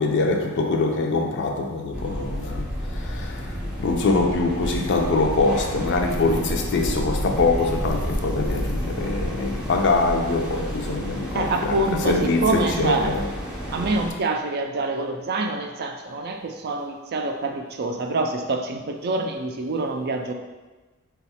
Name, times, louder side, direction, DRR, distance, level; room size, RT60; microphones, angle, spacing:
voice 1, 0.0-13.3, left 3 dB, 55° left, 0.5 m, -24 dB
sound 1, 1.9-14.1, equal, 5° right, 0.6 m, -30 dB
voice 2, 11.3-12.2 12.4-13.1 13.7-20.3, right 2 dB, 45° right, 0.4 m, -26 dB
4.1 x 2.3 x 4.2 m
head